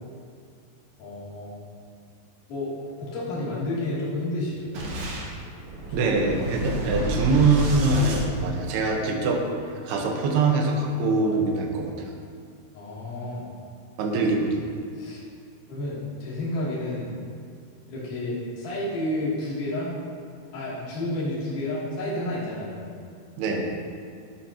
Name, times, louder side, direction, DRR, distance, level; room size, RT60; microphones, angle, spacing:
voice 1, 1.0-1.6 2.5-2.7 3.0-4.7 5.9-6.2 12.7-13.5 14.2-14.3 14.9-15.2 15.7-17.1 17.9-19.9 20.5-22.8, left 1 dB, 55° left, -9 dB, 4.1 m, -30 dB
Boom, 4.7-9.1, right 1 dB, 60° right, 1.5 m, -30 dB
voice 2, 5.9-9.4 9.8-11.9 14.0-14.6 23.4-23.7, right 3 dB, 80° right, 1 dB, 3.2 m, -23 dB
12.0 x 12.0 x 2.9 m, 2.4 s
omnidirectional pair, 4.6 m